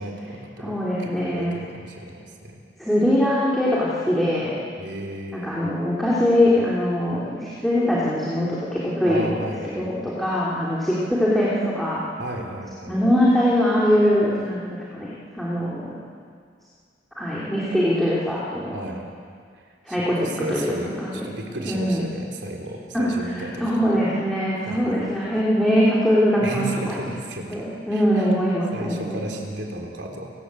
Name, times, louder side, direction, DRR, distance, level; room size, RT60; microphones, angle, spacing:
voice 1, 0.0-2.6 4.8-5.6 9.1-10.0 12.2-13.0 18.7-19.0 19.5-24.0 24.6-25.0 26.4-28.4 28.7-30.3, right 1 dB, 70° right, 1 dB, 3.6 m, -34 dB
voice 2, 0.6-1.5 2.8-4.5 5.3-12.0 12.9-14.6 14.9-15.9 17.2-18.8 19.8-20.2 20.5-21.2 21.6-22.0 22.9-23.1 23.6-27.0 27.5-29.2, equal, ahead, -8 dB, 3.2 m, -22 dB
30.0 x 14.5 x 8.4 m, 2.1 s
head